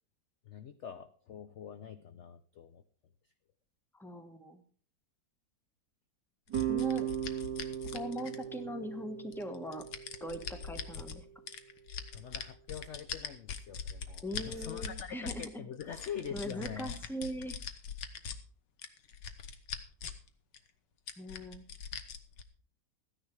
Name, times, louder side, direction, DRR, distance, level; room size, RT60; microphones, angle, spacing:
voice 1, 0.4-2.8 12.1-17.0, left 8 dB, 60° left, 10 dB, 0.8 m, -44 dB
voice 2, 3.9-4.6 6.7-7.1 7.9-9.8 10.2-11.3 14.2-15.7 16.3-17.6 21.2-21.6, equal, ahead, 6 dB, 1.2 m, -40 dB
sound 1, 6.5-8.7 9.3-11.2 11.5-15.5 15.8-18.4 18.8-20.3 20.5-20.6 21.1-22.4, left 6 dB, 80° left, 1.8 m, -42 dB
sound 2, 6.5-11.6, right 10 dB, 70° right, 2.5 m, -38 dB
14.5 x 10.0 x 4.7 m, 0.42 s
omnidirectional pair, 1.9 m